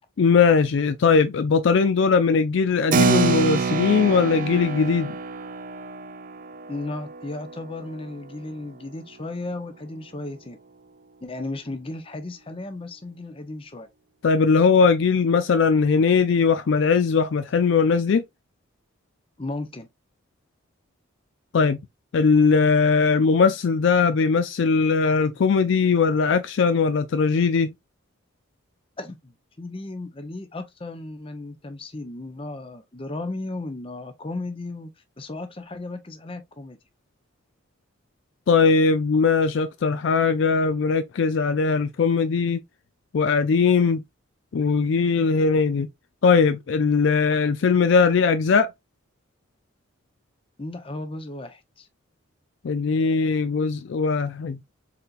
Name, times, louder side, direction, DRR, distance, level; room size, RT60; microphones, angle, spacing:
voice 1, 0.2-5.2 14.2-18.2 21.5-21.8 22.1-27.7 38.5-42.6 43.1-44.0 44.5-45.9 46.2-48.7 52.6-54.6, left 5 dB, 60° left, 0.4 m, -20 dB
Keyboard (musical), 2.9-8.9, right 4 dB, 40° right, 0.4 m, -27 dB
voice 2, 6.7-10.6 11.2-13.9 19.4-19.9 29.0-36.8 50.6-51.9, left 2 dB, 25° left, 0.7 m, -35 dB
4.2 x 3.9 x 2.4 m
head